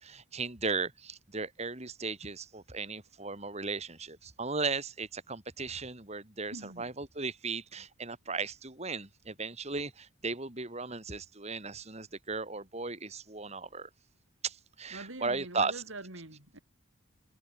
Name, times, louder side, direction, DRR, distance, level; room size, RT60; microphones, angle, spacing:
voice 1, 0.0-13.9 14.4-15.7, right 4 dB, 35° right, 2.9 m, -36 dB
voice 2, 6.5-6.9 14.9-16.6, right 2 dB, 80° right, 4.2 m, -44 dB
head